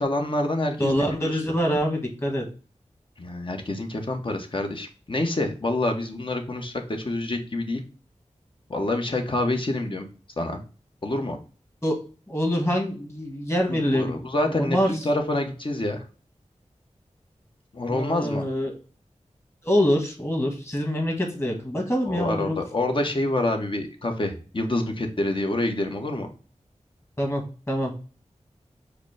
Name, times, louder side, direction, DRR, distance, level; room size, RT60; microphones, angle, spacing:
voice 1, 0.0-1.4 3.2-7.8 8.7-10.1 10.4-10.6 11.0-11.4 13.7-16.0 17.7-18.4 22.1-26.3, left 2 dB, 45° left, 4 dB, 1.0 m, -27 dB
voice 2, 0.8-2.4 11.8-12.0 12.3-14.1 14.4-14.9 17.9-18.7 19.6-22.6 27.2-27.9, equal, 20° left, 1 dB, 1.6 m, -25 dB
4.9 x 2.1 x 4.7 m, 0.37 s
wide cardioid pair, 55°, 12 cm